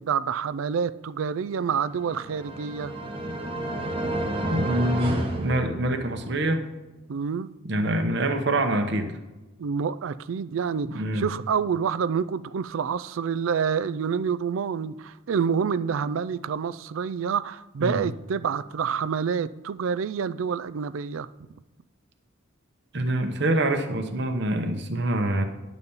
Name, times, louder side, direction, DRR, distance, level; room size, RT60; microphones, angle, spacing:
voice 1, 0.0-2.9 7.1-7.5 9.6-21.3, right 6 dB, 70° right, 16 dB, 0.4 m, -27 dB
sound 1, 1.9-6.3, right 1 dB, 25° right, 0.9 m, -30 dB
voice 2, 4.5-6.7 7.6-9.2 10.8-11.2 17.8-18.0 22.9-25.4, right 1 dB, 55° right, 6 dB, 0.8 m, -25 dB
11.0 x 4.1 x 7.0 m, 1.1 s
head